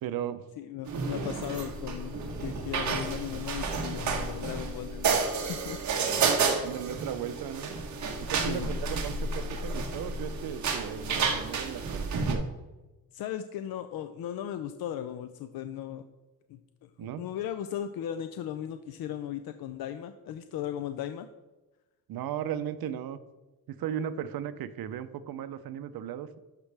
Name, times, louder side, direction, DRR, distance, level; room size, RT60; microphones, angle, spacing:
voice 1, 0.0-0.4 6.6-7.7 8.2-12.4 17.0-17.3 22.1-23.2 23.7-26.3, right 10 dB, 80° right, 12 dB, 0.6 m, -36 dB
voice 2, 0.6-5.8 8.5-8.7 13.1-16.0 16.5-21.3, left 10 dB, 80° left, 9 dB, 0.5 m, -37 dB
sound 1, 0.9-12.3, right 4 dB, 55° right, 1.3 m, -31 dB
11.5 x 6.0 x 3.4 m, 1.1 s
wide cardioid pair, 170°, 35 cm